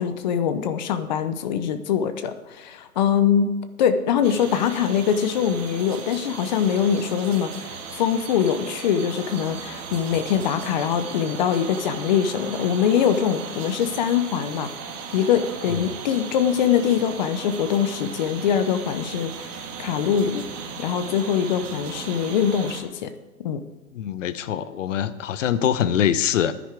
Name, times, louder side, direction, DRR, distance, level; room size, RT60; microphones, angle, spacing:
voice 1, 0.0-3.5 3.8-14.7 15.1-20.4 20.8-23.1 23.4-23.6, left 8 dB, 30° left, 10 dB, 0.7 m, -23 dB
sound 1, 4.2-22.8, right 5 dB, 35° right, 2.0 m, -37 dB
voice 2, 23.9-26.5, left 9 dB, 55° left, 14 dB, 0.9 m, -23 dB
15.5 x 10.0 x 3.5 m, 1.2 s
hypercardioid pair, 140°, 47 cm